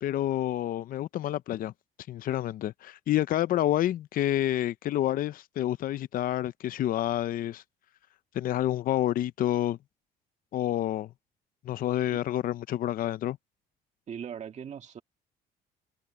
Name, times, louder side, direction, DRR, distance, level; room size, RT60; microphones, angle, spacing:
voice 1, 0.0-1.7 2.1-7.6 8.3-9.8 10.5-11.1 11.6-13.4, left 13 dB, 55° left, 0.6 m, -28 dB
voice 2, 14.1-15.0, right 8 dB, 45° right, 2.1 m, -39 dB
cardioid pair, 110°, 17 cm